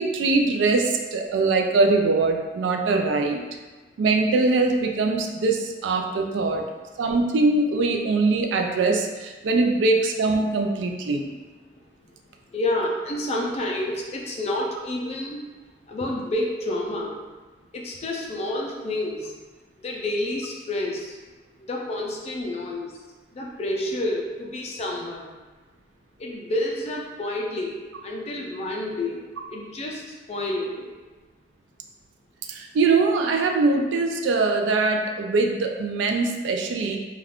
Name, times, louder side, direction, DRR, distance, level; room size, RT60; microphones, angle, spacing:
voice 1, 0.0-3.4 4.0-6.6 7.0-11.2 32.5-37.0, right 3 dB, 80° right, 3 dB, 0.3 m, -22 dB
voice 2, 12.5-15.4 15.9-17.2 17.7-19.3 19.8-21.2 21.6-22.9 23.3-25.3 26.2-29.2 29.5-30.0 30.3-30.9, left 1 dB, 35° left, -1 dB, 0.4 m, -29 dB
2.3 x 2.3 x 3.4 m, 1.3 s
head